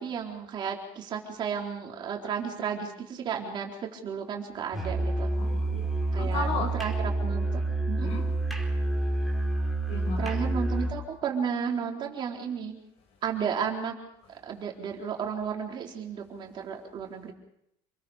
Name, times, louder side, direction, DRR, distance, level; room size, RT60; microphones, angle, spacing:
voice 1, 0.0-5.3 6.1-8.1 10.2-12.8 13.2-14.0 14.3-17.3, right 7 dB, 40° right, 4.0 m, -33 dB
Musical instrument, 4.7-11.0, right 2 dB, ahead, 4.4 m, -28 dB
voice 2, 5.4-5.9 6.2-6.7 8.0-8.2 9.9-10.4, left 4 dB, 55° left, 6.7 m, -34 dB
28.5 x 21.5 x 5.1 m
cardioid pair, 140°, 13 cm